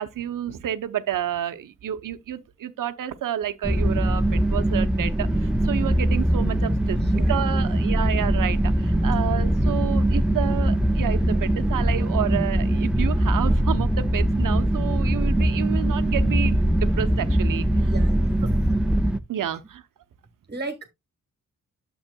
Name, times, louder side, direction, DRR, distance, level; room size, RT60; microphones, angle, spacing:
voice 1, 0.0-17.7 19.3-19.8, right 10 dB, 80° right, 0.8 m, -30 dB
sound 1, 3.6-19.2, right 1 dB, 5° right, 0.6 m, -22 dB
voice 2, 6.9-7.7 17.8-18.4 20.5-20.9, right 3 dB, 30° right, 1.4 m, -35 dB
sound 2, 9.1-13.5, left 3 dB, 75° left, 2.4 m, -41 dB
8.9 x 7.1 x 2.2 m
cardioid pair, 70°, 32 cm